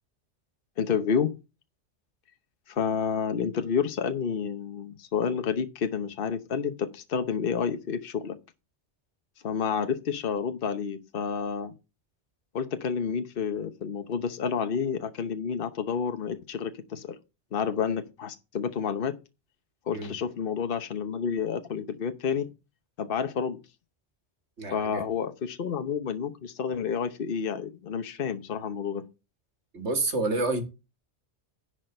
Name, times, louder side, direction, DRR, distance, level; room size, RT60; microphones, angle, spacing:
voice 1, 0.8-1.4 2.7-8.4 9.4-11.7 12.5-17.2 17.5-19.1 19.9-22.5 23.0-23.6 24.7-29.0, left 6 dB, 55° left, 1.1 m, -29 dB
voice 2, 24.6-25.1 29.7-30.6, right 2 dB, 80° right, 2.1 m, -28 dB
10.5 x 4.8 x 6.5 m
omnidirectional pair, 1.1 m